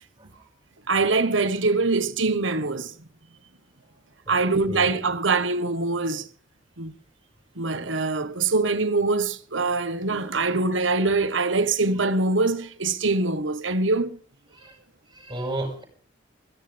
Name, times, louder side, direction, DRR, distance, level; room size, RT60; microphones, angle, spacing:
voice 1, 0.9-2.9 4.3-6.3 6.8-6.9 7.6-14.2, right 3 dB, 80° right, 1.4 m, -23 dB
voice 2, 15.1-15.8, right 1 dB, 25° right, 5.5 m, -32 dB
22.0 x 14.0 x 3.5 m
head